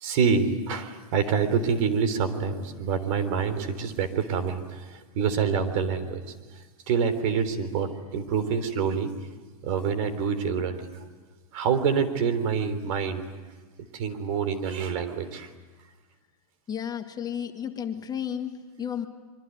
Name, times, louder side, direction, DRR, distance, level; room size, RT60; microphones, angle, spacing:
voice 1, 0.0-6.2 6.9-9.1 9.6-10.9 11.5-13.3 13.9-15.5, right 6 dB, 55° right, 10 dB, 3.6 m, -26 dB
voice 2, 16.7-19.1, left 8 dB, 20° left, 6 dB, 1.6 m, -33 dB
24.5 x 24.5 x 9.4 m, 1.3 s
hypercardioid pair, 125°, 19 cm